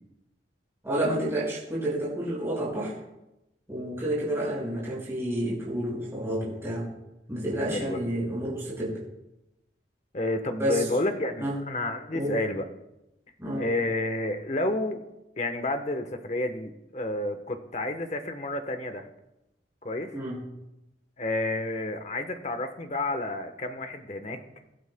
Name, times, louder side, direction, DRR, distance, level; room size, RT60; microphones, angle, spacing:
voice 1, 0.8-2.9 3.7-6.9 7.3-9.0 10.6-10.9 11.4-11.6 12.1-12.4 13.4-13.6 20.1-20.4, right 1 dB, 15° right, -7 dB, 5.4 m, -30 dB
voice 2, 7.7-8.1 10.1-12.7 13.6-15.0 15.4-19.1 19.8-20.1 21.2-24.4, left 2 dB, 40° left, 7 dB, 1.0 m, -30 dB
25.0 x 12.0 x 2.2 m, 0.93 s
head